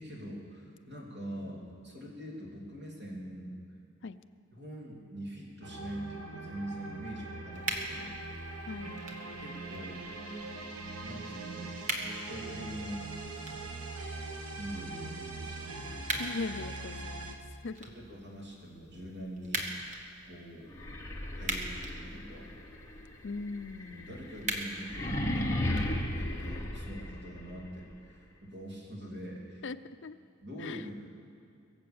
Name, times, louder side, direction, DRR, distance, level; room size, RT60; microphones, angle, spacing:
voice 1, 0.0-3.5 4.5-8.2 9.4-10.1 11.0-11.7 12.3-13.0 14.6-16.0 17.8-19.7 20.3-20.7 21.4-22.5 23.9-29.6 30.4-30.9, equal, 50° right, -3 dB, 3.4 m, -43 dB
sound 1, 5.6-17.4, right 2 dB, 85° right, 1.4 m, -42 dB
sound 2, 7.5-26.5, right 2 dB, 35° right, 1.4 m, -43 dB
voice 2, 8.7-9.0 16.2-17.4 17.6-17.8 23.2-24.3 29.6-29.8 30.0-30.1 30.6-30.8, left 4 dB, 55° left, 11 dB, 0.5 m, -39 dB
sound 3, 20.7-27.6, left 1 dB, 15° left, 1.1 m, -36 dB
23.0 x 7.6 x 7.1 m, 2.4 s
head